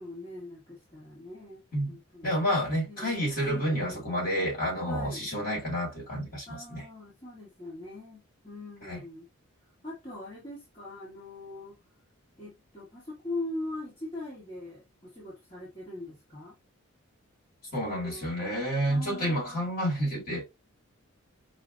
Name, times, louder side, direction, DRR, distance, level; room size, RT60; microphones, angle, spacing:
voice 1, 0.0-2.3 2.8-3.1 3.4-4.0 4.8-5.3 6.5-9.3 9.8-11.8 12.4-16.5 17.8-18.3 18.9-19.7, left 2 dB, 25° left, 1.2 m, -41 dB
voice 2, 2.2-6.8 8.8-9.0 17.7-20.4, equal, 40° left, 2.1 m, -29 dB
4.8 x 2.0 x 2.5 m
head